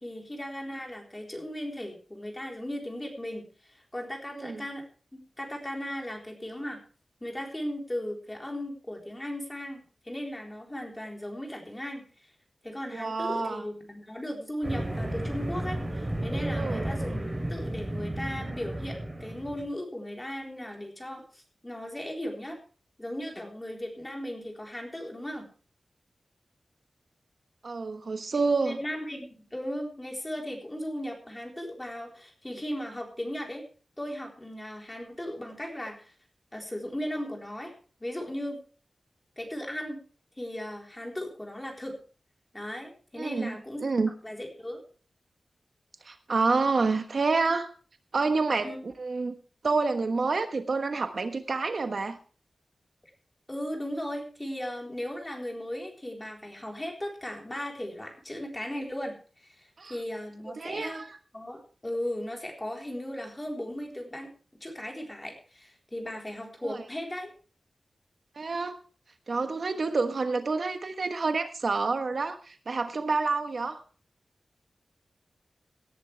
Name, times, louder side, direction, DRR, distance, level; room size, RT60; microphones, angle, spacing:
voice 1, 0.0-4.8 5.1-6.8 7.2-12.3 12.6-22.6 23.0-25.4 28.6-33.6 34.0-36.1 36.5-37.7 38.0-38.6 39.4-40.0 40.4-42.0 42.5-43.8 44.2-44.8 48.6-48.8 53.5-59.1 59.4-61.0 61.3-64.3 64.6-67.3, left 1 dB, 15° left, 1 dB, 4.0 m, -37 dB
voice 2, 4.3-4.6 12.9-13.6 16.6-16.9 27.6-28.8 43.2-43.6 43.8-44.1 46.0-47.7 48.1-49.3 49.6-52.2 59.8-59.9 60.6-61.1 66.6-66.8 68.3-68.8 69.3-73.8, right 4 dB, 60° right, 7 dB, 1.2 m, -28 dB
sound 1, 14.6-19.7, right 1 dB, 20° right, 3.6 m, -33 dB
18.0 x 11.0 x 3.4 m, 0.39 s
wide cardioid pair, 130°, 0 cm